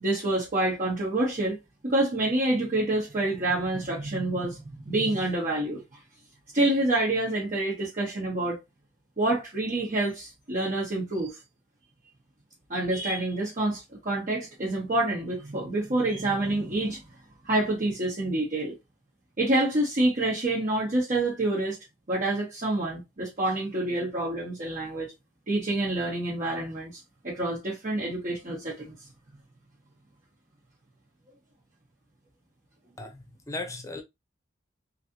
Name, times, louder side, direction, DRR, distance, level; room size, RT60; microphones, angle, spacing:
voice 1, 0.0-1.6 1.8-5.8 6.5-8.6 9.2-11.4 12.7-17.0 17.4-18.7 19.4-21.8 22.1-25.1 25.5-28.9, right 2 dB, 45° right, 1.1 m, -27 dB
voice 2, 33.0-34.0, left 2 dB, 15° left, 0.7 m, -37 dB
3.2 x 2.7 x 2.7 m
head